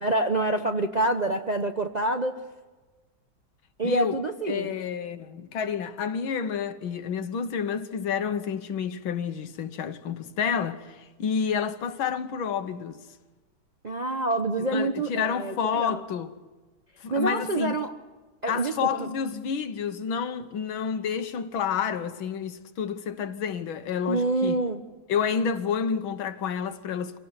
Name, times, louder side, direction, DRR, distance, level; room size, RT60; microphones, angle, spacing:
voice 1, 0.0-2.4 3.8-4.8 13.8-16.0 17.1-17.9 18.4-19.1 24.1-24.8, right 2 dB, 40° right, 0.6 m, -27 dB
voice 2, 3.8-4.2 4.5-13.0 14.6-16.3 17.0-17.8 18.5-24.6 25.1-27.2, left 7 dB, 85° left, 2.0 m, -29 dB
25.5 x 17.5 x 9.7 m
omnidirectional pair, 2.1 m